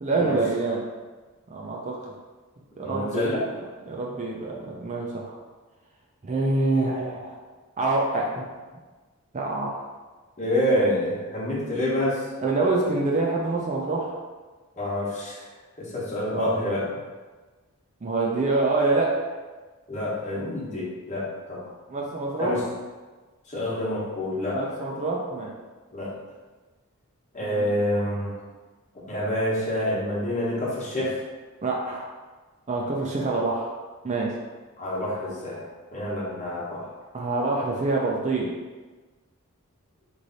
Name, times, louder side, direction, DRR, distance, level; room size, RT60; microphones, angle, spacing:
voice 1, 0.0-0.8 1.5-2.0 2.8-3.4 3.9-5.4 6.2-7.4 7.8-8.5 9.3-9.9 12.4-14.1 16.3-16.7 18.0-19.3 21.9-22.6 24.5-25.5 27.4-27.7 31.6-32.1 32.7-33.7 34.0-34.3 37.1-38.5, right 3 dB, 35° right, -2 dB, 0.5 m, -26 dB
voice 2, 2.8-3.4 10.4-12.2 14.8-15.4 15.8-16.8 19.9-21.6 22.4-22.6 23.5-24.6 25.9-26.1 27.3-28.3 29.1-31.2 34.8-35.6 35.9-36.9, left 1 dB, 35° left, -7 dB, 1.1 m, -27 dB
3.2 x 2.6 x 3.9 m, 1.3 s
head